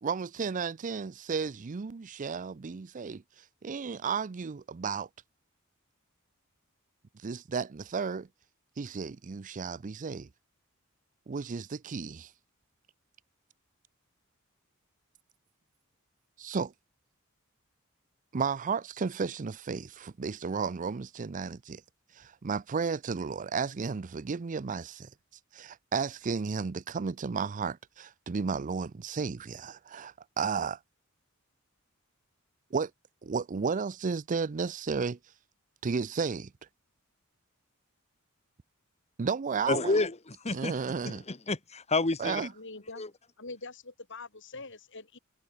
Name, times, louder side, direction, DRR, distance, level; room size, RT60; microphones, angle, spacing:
voice 1, 0.0-3.2 3.6-5.1 7.2-8.3 8.8-10.3 11.3-12.3 16.4-16.7 18.3-21.8 22.2-25.1 25.5-30.8 32.7-32.9 33.2-35.2 35.8-36.5 39.2-40.0 40.5-41.2 42.2-42.5, right 5 dB, 40° right, 0.5 m, -33 dB
voice 2, 39.7-40.8 41.0-42.4 43.0-43.1, left 3 dB, 30° left, 1.5 m, -29 dB
voice 3, 42.6-43.0 43.4-45.2, left 3 dB, 60° left, 6.0 m, -44 dB
head